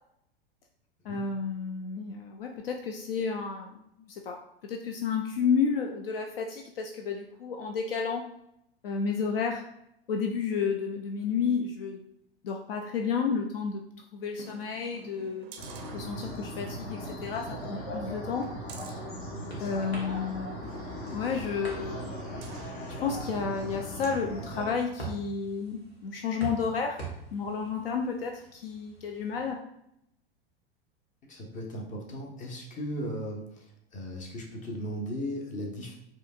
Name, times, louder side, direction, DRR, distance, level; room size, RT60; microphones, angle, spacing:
voice 1, 1.0-4.4 4.6-8.2 8.8-9.6 10.1-12.0 12.4-13.8 14.1-15.5 15.9-18.5 19.6-20.8 21.1-22.1 23.0-27.0 27.3-29.6, left 5 dB, 65° left, 3 dB, 0.5 m, -31 dB
sound 1, 14.3-16.6 17.0-17.1 17.5-20.0 20.6-22.8 23.3-23.4, right 6 dB, 35° right, 0.5 m, -50 dB
sound 2, 15.6-24.7, equal, 50° left, 1.3 m, -38 dB
sound 3, 18.6-29.5, right 4 dB, 85° left, 1.3 m, -46 dB
voice 2, 31.3-36.0, equal, 25° left, 0 dB, 1.0 m, -37 dB
4.9 x 2.8 x 2.4 m, 0.78 s
figure-of-eight pair, 90°, 31 cm